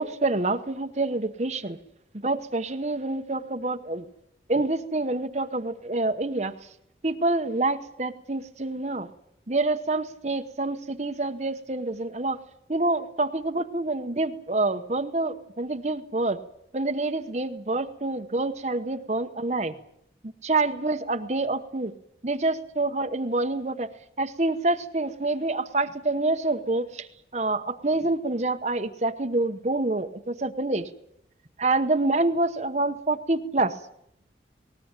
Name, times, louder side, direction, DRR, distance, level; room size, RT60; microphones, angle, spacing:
voice 1, 0.0-1.8 2.2-4.0 4.5-6.5 7.0-9.1 9.5-12.4 12.7-16.4 16.7-19.7 20.4-21.9 22.2-23.9 24.2-27.1 27.3-30.9 31.6-33.7, right 2 dB, 40° right, 7 dB, 1.0 m, -27 dB
19.5 x 19.0 x 8.9 m, 0.77 s
head